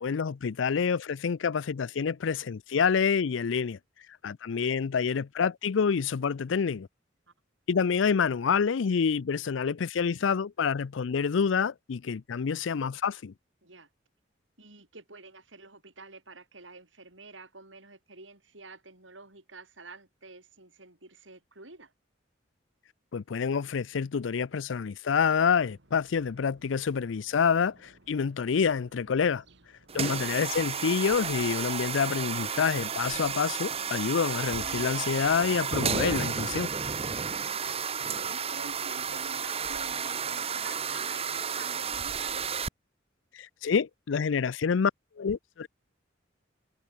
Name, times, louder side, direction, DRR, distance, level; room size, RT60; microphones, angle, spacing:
voice 1, 0.0-3.8 4.2-6.9 7.7-13.3 23.1-29.4 29.9-36.7 43.3-44.9 45.2-45.7, left 6 dB, 90° left, 0.5 m, -27 dB
voice 2, 14.6-21.9 29.9-30.2 37.2-42.5, right 3 dB, 90° right, 7.9 m, -49 dB
sound 1, 25.3-30.7, right 1 dB, 65° right, 4.1 m, -61 dB
sound 2, 29.9-42.7, right 6 dB, 35° right, 1.0 m, -32 dB
head